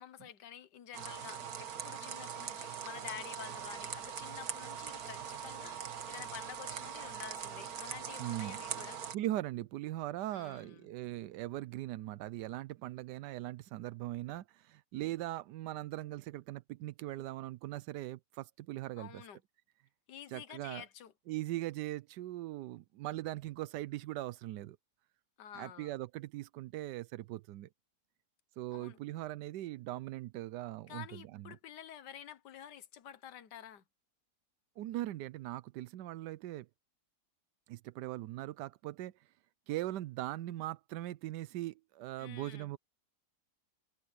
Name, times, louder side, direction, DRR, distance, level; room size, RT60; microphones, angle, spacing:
voice 1, 0.0-9.0 10.3-10.9 19.0-19.4 20.1-21.1 25.4-25.9 28.7-29.0 30.9-33.8 42.2-42.7, left 10 dB, 90° left, 1.6 m, -50 dB
sound 1, 0.9-9.2, right 8 dB, 65° right, 1.7 m, -42 dB
voice 2, 8.2-8.6 9.1-19.2 20.3-20.8 21.3-24.8 25.5-27.7 28.6-31.6 34.8-36.7 37.7-39.1 39.7-42.8, right 15 dB, 90° right, 1.2 m, -40 dB
omnidirectional pair, 1.8 m